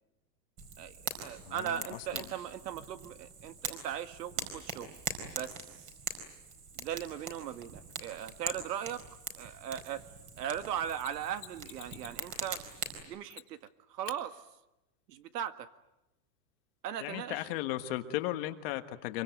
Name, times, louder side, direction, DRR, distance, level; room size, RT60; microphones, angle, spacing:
Fire, 0.6-13.0, right 5 dB, 25° right, 4.6 m, -42 dB
voice 1, 0.8-4.9 5.3-5.5 6.8-9.0 9.4-10.0 10.4-12.6 13.1-13.6 13.9-14.4 15.1-15.7 16.8-17.5, right 9 dB, 70° right, 10 dB, 1.9 m, -38 dB
voice 2, 1.5-1.8 2.1-2.2 17.0-19.2, left 15 dB, 35° left, 8 dB, 1.5 m, -35 dB
Mechanisms, 11.0-12.2 13.3-13.7 14.0-14.2 17.0-17.1, left 13 dB, 75° left, 2.9 m, -49 dB
26.0 x 24.0 x 9.3 m, 0.94 s
supercardioid pair, 170°, 50 cm